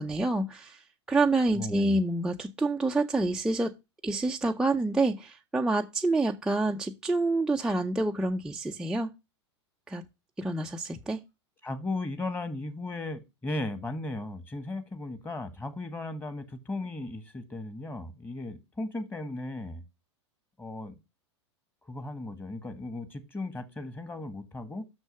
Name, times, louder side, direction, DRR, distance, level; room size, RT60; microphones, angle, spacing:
voice 1, 0.0-3.7 4.0-9.1 9.9-10.0 10.4-11.2, right 2 dB, 5° right, 0.5 m, -27 dB
voice 2, 1.5-2.0 11.6-19.8 20.6-20.9 21.8-24.9, left 2 dB, 15° left, 1.5 m, -36 dB
6.4 x 6.2 x 5.2 m
hypercardioid pair, 95°, 15 cm